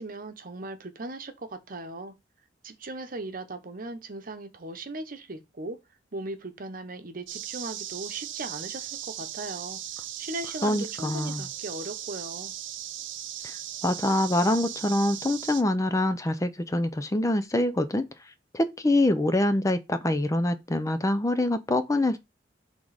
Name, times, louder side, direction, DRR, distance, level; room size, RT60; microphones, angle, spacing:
voice 1, 0.0-2.1 2.6-5.8 6.1-9.8 10.2-12.5, right 2 dB, 50° right, 0.9 m, -38 dB
sound 1, 7.3-15.6, right 11 dB, 80° right, 0.7 m, -38 dB
voice 2, 10.6-11.4 13.4-13.6 13.8-18.1 18.5-22.2, left 1 dB, 15° left, 0.5 m, -25 dB
6.1 x 3.6 x 4.7 m
head